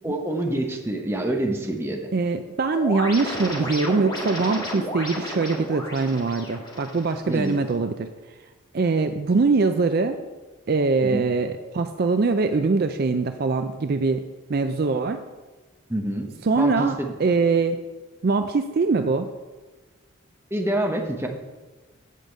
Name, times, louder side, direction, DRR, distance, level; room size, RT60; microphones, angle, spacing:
voice 1, 0.0-2.0 7.3-7.6 11.0-11.3 15.9-17.1 20.5-21.3, right 1 dB, 10° right, 2 dB, 0.9 m, -27 dB
voice 2, 2.1-8.1 8.7-10.2 10.7-14.2 14.5-15.2 16.4-17.8 18.2-19.3, right 4 dB, 45° right, 7 dB, 0.4 m, -23 dB
sound 1, 2.7-7.7, equal, 20° left, 1.7 m, -33 dB
8.3 x 5.1 x 7.6 m, 1.3 s
head